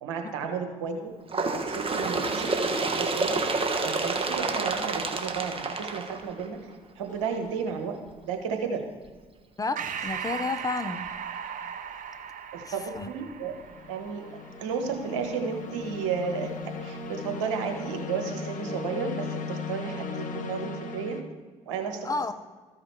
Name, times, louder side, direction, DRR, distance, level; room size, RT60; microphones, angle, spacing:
voice 1, 0.0-3.4 3.8-6.6 7.0-8.0 8.2-8.8 12.5-13.5 13.9-14.2 14.6-21.2 21.7-22.1, right 6 dB, 90° right, 4 dB, 1.2 m, -33 dB
Bird, 1.3-6.7 7.6-7.7 8.1-8.2 9.1-9.2 10.1-10.2 11.1-11.2, right 3 dB, 35° right, 1.3 m, -28 dB
sound 1, 7.1-7.5 13.4-21.2, left 4 dB, 55° left, 1.1 m, -37 dB
voice 2, 9.6-11.1 12.7-13.1 22.0-22.3, left 3 dB, 20° left, 10 dB, 0.8 m, -31 dB
Breathing, 9.8-14.6, right 8 dB, 55° right, 0.8 m, -37 dB
14.0 x 4.9 x 4.5 m, 1.5 s
hypercardioid pair, 55°, 16 cm